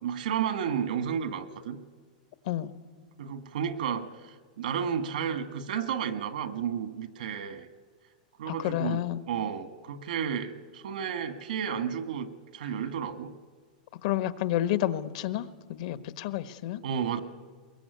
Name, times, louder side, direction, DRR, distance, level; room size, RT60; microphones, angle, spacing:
voice 1, 0.0-1.8 3.2-7.7 8.4-9.0 9.3-13.3 16.8-17.2, right 8 dB, 75° right, 11 dB, 1.9 m, -32 dB
voice 2, 8.4-9.2 14.0-16.8, left 13 dB, 50° left, 13 dB, 1.2 m, -30 dB
22.5 x 22.0 x 9.6 m, 1.5 s
supercardioid pair, 165°, 5 cm